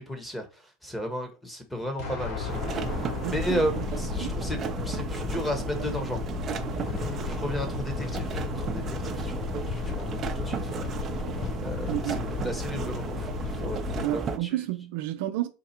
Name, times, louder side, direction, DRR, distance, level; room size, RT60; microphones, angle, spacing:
voice 1, 0.0-2.6 3.2-6.2 7.0-9.3 9.7-10.9 11.6-14.5, equal, 10° left, 1.2 m, -34 dB
Explosion, 2.0-5.0, left 3 dB, 65° left, 2.5 m, -39 dB
sound 1, 2.2-14.1, left 7 dB, 40° left, 0.5 m, -34 dB
sound 2, 2.5-14.4, right 5 dB, 35° right, 0.7 m, -34 dB
voice 2, 3.2-3.9 4.2-4.4 11.9-12.2 14.0-15.5, right 14 dB, 70° right, 0.6 m, -31 dB
4.0 x 2.4 x 4.3 m
supercardioid pair, 105°, 0 cm